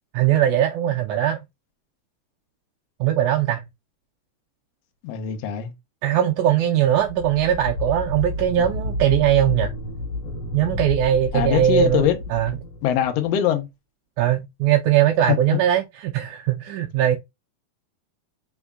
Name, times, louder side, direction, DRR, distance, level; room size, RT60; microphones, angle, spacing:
voice 1, 0.1-1.4 3.0-3.6 6.0-9.7 10.5-12.6 14.2-17.2, right 11 dB, 85° right, 1.7 m, -20 dB
voice 2, 5.0-5.7 11.3-12.2 12.8-13.7 15.3-15.6, left 10 dB, 75° left, 1.5 m, -22 dB
sound 1, 7.0-13.4, left 2 dB, 55° left, 1.9 m, -30 dB
5.1 x 3.6 x 2.3 m
omnidirectional pair, 4.0 m